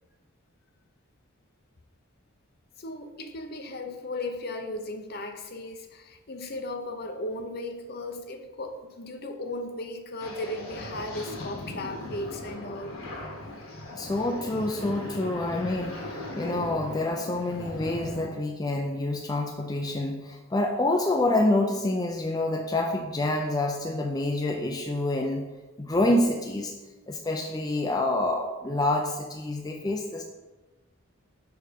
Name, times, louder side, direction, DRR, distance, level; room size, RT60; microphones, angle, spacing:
voice 1, 2.8-13.0, left 2 dB, 50° left, 5 dB, 0.7 m, -36 dB
sound 1, 10.2-18.3, left 1 dB, 85° left, 1.6 m, -38 dB
voice 2, 13.9-25.5 25.8-26.7 27.1-30.2, left 2 dB, 20° left, 1 dB, 0.4 m, -27 dB
6.2 x 4.7 x 5.1 m, 1.2 s
head